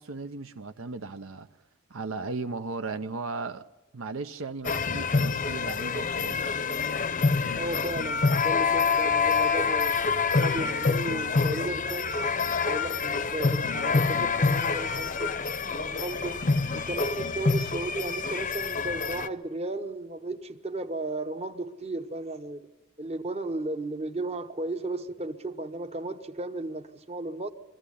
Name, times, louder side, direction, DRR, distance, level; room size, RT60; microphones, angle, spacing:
voice 1, 0.0-1.5 1.9-3.7 3.9-6.5, right 3 dB, 70° right, 0.7 m, -36 dB
sound 1, 4.6-19.3, left 4 dB, 40° left, 0.7 m, -26 dB
voice 2, 7.5-10.0 10.4-15.3 15.8-16.4 16.7-22.6 23.0-27.5, right 2 dB, 30° right, 1.0 m, -35 dB
22.0 x 15.0 x 9.9 m
head